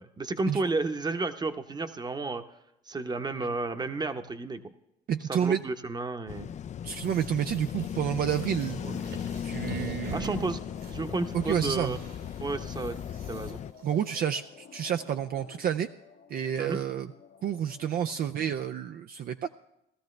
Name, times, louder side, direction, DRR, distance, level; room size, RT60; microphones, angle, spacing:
voice 1, 0.0-2.4 2.9-4.7 5.3-6.5 10.1-10.6 10.9-12.0 12.4-13.0 13.3-13.6 16.6-16.8, right 3 dB, 20° right, 8 dB, 0.9 m, -32 dB
voice 2, 5.1-5.6 6.8-8.8 9.4-10.5 11.3-12.0 13.8-15.9 16.3-17.1 17.4-19.5, right 9 dB, 50° right, 7 dB, 0.5 m, -29 dB
sound 1, 6.3-13.7, left 9 dB, 40° left, 0.4 m, -37 dB
sound 2, 6.9-14.1, right 4 dB, 80° right, 3.7 m, -47 dB
sound 3, 9.1-18.6, left 8 dB, 55° left, 1.0 m, -53 dB
17.0 x 13.0 x 3.3 m, 0.84 s
supercardioid pair, 85°, 19 cm